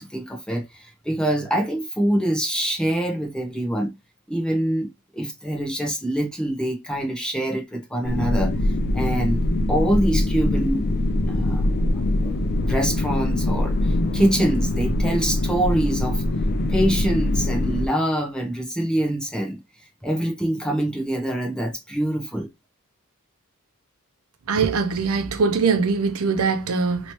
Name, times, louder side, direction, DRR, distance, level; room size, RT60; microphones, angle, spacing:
voice 1, 0.0-3.9 4.3-4.9 5.1-8.5 8.9-10.9 11.3-11.6 12.2-12.4 12.6-16.2 16.7-19.6 20.0-22.5, right 1 dB, 5° left, 0.9 m, -25 dB
sound 1, 8.0-17.9, left 1 dB, 45° left, 0.4 m, -23 dB
voice 2, 24.5-27.1, right 5 dB, 70° right, 0.6 m, -22 dB
3.0 x 3.0 x 2.9 m
head